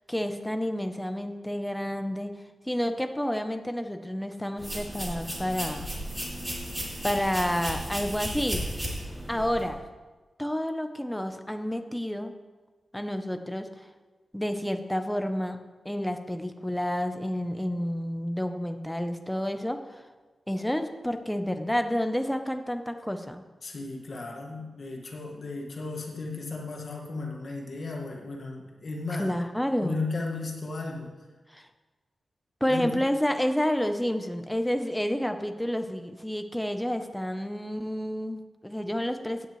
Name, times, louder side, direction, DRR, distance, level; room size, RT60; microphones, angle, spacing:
voice 1, 0.1-2.3 2.7-5.9 7.0-8.6 9.3-9.8 10.4-12.3 12.9-13.7 14.3-15.6 15.8-19.8 20.5-23.4 29.2-30.0 31.5-31.6 32.6-39.5, equal, 5° left, 7 dB, 0.7 m, -29 dB
sound 1, 4.6-9.7, equal, 15° right, 2.4 m, -34 dB
voice 2, 23.6-29.3 29.8-31.1 32.7-32.9, left 3 dB, 50° left, 0 dB, 1.7 m, -35 dB
16.0 x 9.4 x 3.2 m, 1.3 s
wide cardioid pair, 160°, 0 cm